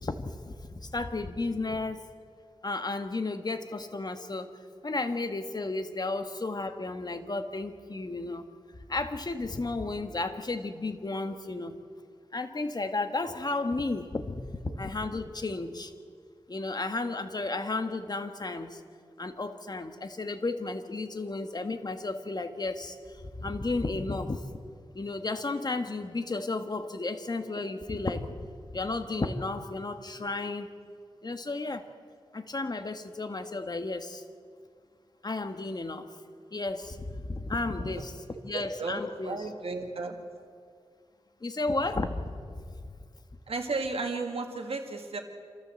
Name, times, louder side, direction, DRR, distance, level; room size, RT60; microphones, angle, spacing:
voice 1, 0.0-2.0 2.6-4.5 4.8-8.5 8.9-11.8 12.3-15.9 16.5-18.8 19.2-24.4 24.9-28.3 28.7-30.7 31.2-31.9 32.3-34.2 35.2-36.1 36.5-39.5 41.4-42.6, left 3 dB, 45° left, 7 dB, 1.6 m, -33 dB
voice 2, 38.5-40.2 43.5-45.2, right 3 dB, 80° right, 2 dB, 1.9 m, -34 dB
27.5 x 14.0 x 7.8 m, 2.1 s
wide cardioid pair, 65°, 10 cm